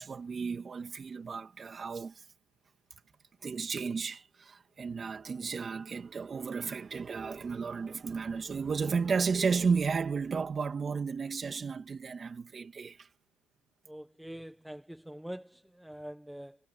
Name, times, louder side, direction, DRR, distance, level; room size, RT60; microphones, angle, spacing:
voice 1, 0.0-2.1 3.4-13.0, right 5 dB, 20° right, 2.3 m, -33 dB
voice 2, 13.9-16.6, equal, ahead, 1.1 m, -44 dB
cardioid pair, 150°, 0 cm